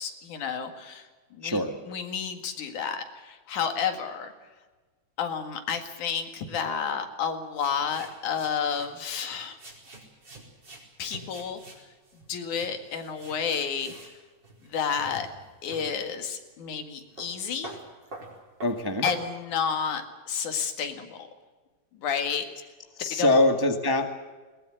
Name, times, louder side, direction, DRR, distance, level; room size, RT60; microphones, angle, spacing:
voice 1, 0.0-4.3 5.2-9.6 11.0-11.6 12.3-13.9 14.6-15.3 15.6-17.8 19.0-21.3 22.0-22.5 23.1-23.4, left 7 dB, 90° left, 6 dB, 3.5 m, -31 dB
voice 2, 1.4-1.7 18.6-19.0 23.0-24.1, left 2 dB, 15° right, 5 dB, 0.9 m, -23 dB
sound 1, 7.6-8.9 9.6-13.4 13.7-14.2 14.4-15.9 16.5-16.6 16.8-19.2, right 2 dB, 35° right, 5.1 m, -45 dB
21.5 x 20.0 x 7.8 m, 1.3 s
omnidirectional pair, 3.4 m